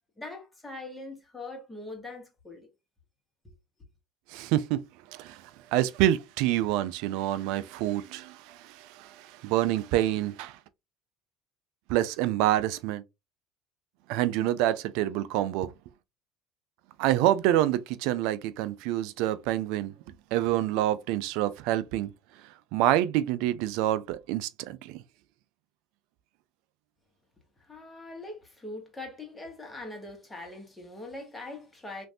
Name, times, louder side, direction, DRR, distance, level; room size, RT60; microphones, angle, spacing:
voice 1, 0.2-2.7 27.6-32.1, left 2 dB, 15° left, 1.3 m, -42 dB
voice 2, 4.3-4.8 5.1-5.4 5.7-10.6 11.9-13.0 14.1-15.7 17.0-19.9 20.3-22.1 22.7-25.0, right 13 dB, 70° right, 0.3 m, -27 dB
3.1 x 2.6 x 2.6 m
supercardioid pair, 90°, 0 cm